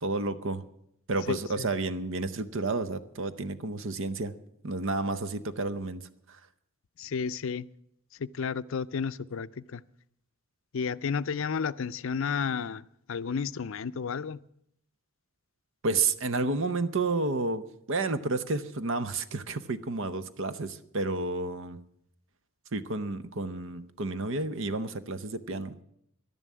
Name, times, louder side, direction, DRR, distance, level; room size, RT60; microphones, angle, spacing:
voice 1, 0.0-0.6 1.1-4.3 4.6-6.4 15.8-21.8 22.7-25.8, right 3 dB, 60° right, 0.8 m, -31 dB
voice 2, 1.3-1.7 7.0-7.7 8.2-9.8 10.7-12.8 13.1-14.4, left 6 dB, 60° left, 0.5 m, -32 dB
12.0 x 11.0 x 8.3 m
head